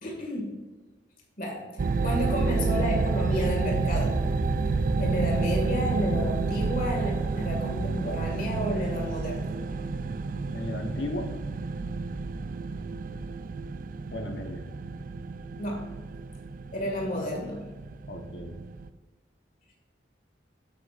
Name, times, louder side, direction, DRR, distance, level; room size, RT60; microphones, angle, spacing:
voice 1, 0.0-0.6 1.4-1.6 2.0-4.2 5.0-9.6 15.6-15.9 16.7-17.6, equal, 50° left, 0 dB, 2.0 m, -31 dB
sound 1, 1.8-18.9, right 3 dB, 50° right, 0.4 m, -29 dB
voice 2, 10.5-11.3 14.1-14.6 18.1-18.5, left 1 dB, 85° left, 4 dB, 1.1 m, -35 dB
8.6 x 7.8 x 2.5 m, 1.2 s
head